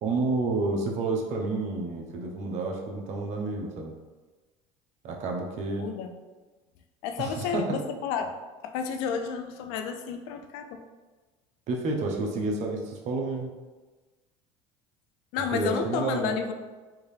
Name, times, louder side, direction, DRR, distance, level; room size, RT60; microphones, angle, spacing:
voice 1, 0.0-3.9 5.0-5.9 7.2-7.8 11.7-13.5 15.5-16.4, right 3 dB, 50° right, 1 dB, 0.7 m, -30 dB
voice 2, 5.8-6.1 7.0-8.3 8.6-10.8 15.3-16.5, left 7 dB, 75° left, 6 dB, 0.4 m, -31 dB
3.6 x 2.7 x 3.2 m, 1.3 s
supercardioid pair, 95°, 15 cm